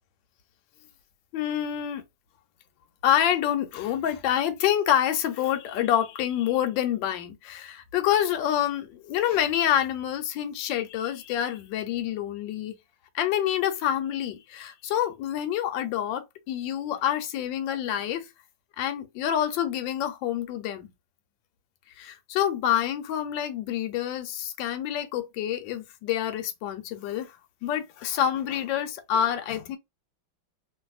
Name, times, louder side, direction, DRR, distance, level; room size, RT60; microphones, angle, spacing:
voice 1, 1.3-2.0 3.0-12.8 13.1-18.3 18.8-20.9 22.0-27.4 27.6-29.8, left 10 dB, 75° left, 1.3 m, -27 dB
2.9 x 2.7 x 2.4 m
omnidirectional pair, 2.2 m